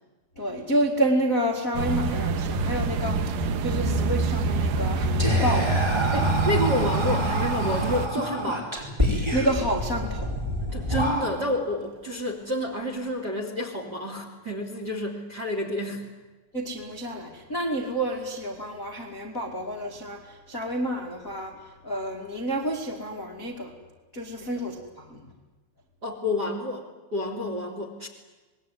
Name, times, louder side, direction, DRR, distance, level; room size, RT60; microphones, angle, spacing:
voice 1, 0.3-6.1 9.1-10.4 16.5-23.7 24.1-25.3, right 1 dB, 30° left, 1 dB, 1.7 m, -29 dB
sound 1, 1.7-8.1, right 3 dB, 85° right, 1.8 m, -25 dB
Whispering, 5.2-11.7, equal, 5° right, 4.7 m, -28 dB
voice 2, 6.1-8.6 10.7-16.1 24.4-24.5 26.0-26.8 27.1-28.1, left 1 dB, 30° right, 4 dB, 2.3 m, -29 dB
26.5 x 20.5 x 9.4 m, 1.2 s
omnidirectional pair, 5.7 m